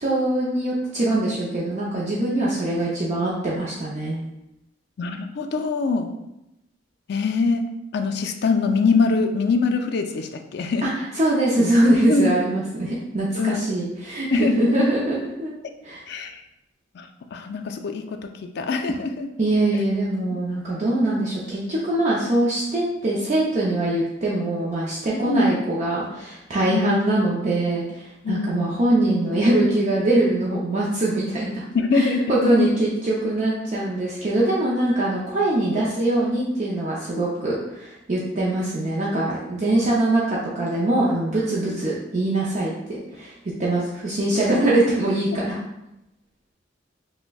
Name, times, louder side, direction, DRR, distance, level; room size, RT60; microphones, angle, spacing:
voice 1, 0.0-4.2 10.8-15.5 15.8-16.0 19.4-31.6 31.9-43.3 43.6-45.6, right 1 dB, 40° right, -6 dB, 0.5 m, -23 dB
voice 2, 5.0-6.1 7.1-10.8 11.6-12.4 13.4-13.6 14.3-14.8 16.1-16.4 16.9-19.3 25.2-25.5 26.7-27.0 28.2-28.7 31.7-32.7 37.1-37.2, left 4 dB, 60° left, 6 dB, 0.3 m, -24 dB
5.8 x 2.1 x 2.2 m, 0.89 s
head